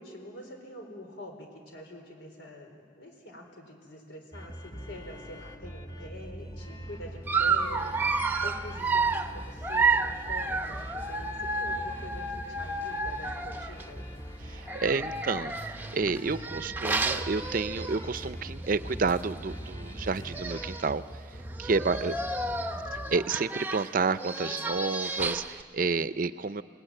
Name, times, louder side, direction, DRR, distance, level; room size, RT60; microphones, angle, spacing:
voice 1, 0.0-14.1 21.7-22.6, left 1 dB, 90° left, 4 dB, 4.4 m, -46 dB
sound 1, 4.3-23.2, equal, 25° left, 1.6 m, -43 dB
sound 2, 4.6-21.1, equal, 55° left, 4.8 m, -49 dB
Dog, 7.3-13.8 14.6-18.2 18.6-18.8 19.1-19.2 20.0-20.1 20.3-20.9 21.5-25.6, right 3 dB, 10° right, 0.8 m, -31 dB
voice 2, 14.4-21.0 21.6-22.1 23.1-26.6, right 4 dB, 50° right, 13 dB, 0.5 m, -30 dB
28.0 x 19.0 x 9.1 m, 2.2 s
head